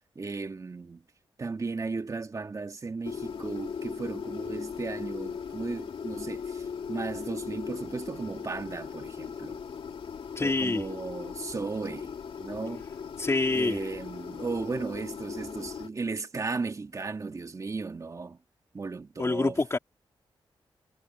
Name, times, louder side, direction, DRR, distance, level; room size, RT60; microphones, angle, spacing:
voice 1, 0.2-1.0 1.4-9.6 10.4-12.1 12.4-12.8 13.5-18.4 18.7-19.6, right 4 dB, 35° right, 1.9 m, -35 dB
sound 1, 3.0-15.9, left 6 dB, 75° left, 2.2 m, -38 dB
voice 2, 10.3-10.9 13.2-13.9 19.2-19.8, left 3 dB, 30° left, 3.1 m, -26 dB
wide cardioid pair, 100°, 9 cm